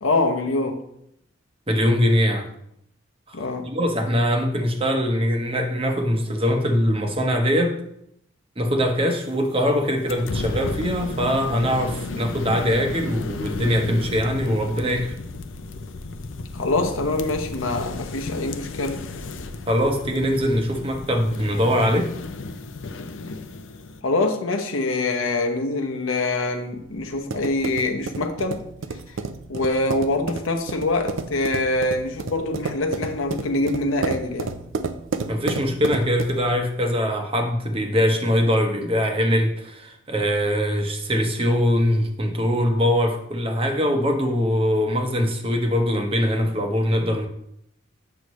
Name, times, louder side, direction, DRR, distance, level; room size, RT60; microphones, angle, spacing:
voice 1, 0.0-0.8 3.3-3.7 16.5-19.0 24.0-28.7 29.1-29.2 29.5-34.5, left 2 dB, 90° left, 0.9 m, -24 dB
voice 2, 1.7-2.5 3.3-3.4 3.6-7.8 8.6-15.1 19.7-22.1 35.3-47.3, equal, 25° right, 0.9 m, -22 dB
sound 1, 10.1-24.0, left 3 dB, 70° left, 0.5 m, -33 dB
sound 2, 26.8-36.5, right 4 dB, 75° right, 0.5 m, -31 dB
7.9 x 6.5 x 3.1 m
head